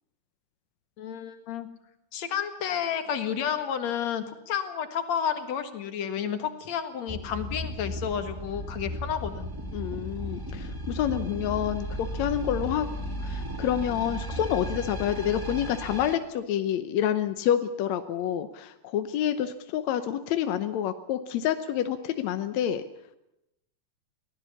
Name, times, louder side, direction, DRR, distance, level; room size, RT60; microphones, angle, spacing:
voice 1, 1.0-1.7 2.1-9.5, left 8 dB, 55° left, 8 dB, 2.6 m, -31 dB
sound 1, 7.1-16.1, equal, 30° right, 0.4 m, -35 dB
voice 2, 9.7-12.9 13.2-22.8, left 10 dB, 75° left, 9 dB, 1.7 m, -28 dB
22.5 x 18.0 x 7.2 m, 0.84 s
omnidirectional pair, 4.2 m